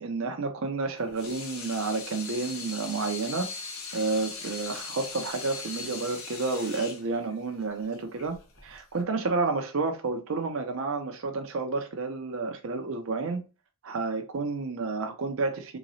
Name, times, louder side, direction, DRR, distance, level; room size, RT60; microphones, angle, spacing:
voice 1, 0.0-3.5 3.9-13.4 13.8-15.8, right 3 dB, 60° right, 0.5 m, -30 dB
Water tap faucet / Sink (filling or washing), 1.0-9.0, left 4 dB, 70° left, 0.9 m, -40 dB
3.8 x 3.0 x 2.6 m
head